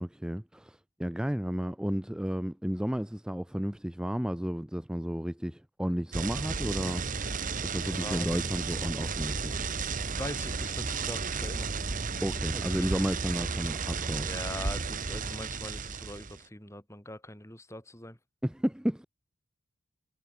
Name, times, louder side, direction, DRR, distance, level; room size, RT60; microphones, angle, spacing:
voice 1, 0.0-7.0 7.6-9.5 12.2-14.3 18.4-19.1, equal, 5° right, 0.4 m, -32 dB
sound 1, 6.1-16.4, right 4 dB, 40° right, 1.2 m, -33 dB
voice 2, 7.6-8.3 10.1-11.7 12.5-13.1 14.2-18.2, left 1 dB, 15° left, 6.3 m, -42 dB
head